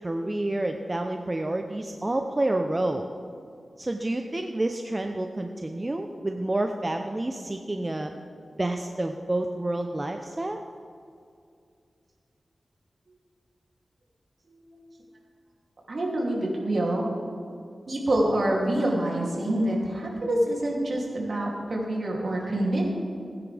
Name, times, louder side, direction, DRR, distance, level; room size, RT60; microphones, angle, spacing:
voice 1, 0.0-3.1 3.8-8.1 8.6-10.6, right 1 dB, 30° right, 5 dB, 0.6 m, -29 dB
voice 2, 15.9-17.1 17.9-22.8, right 1 dB, 60° right, -2 dB, 2.7 m, -26 dB
17.0 x 9.7 x 3.4 m, 2.4 s
wide cardioid pair, 65°, 0 cm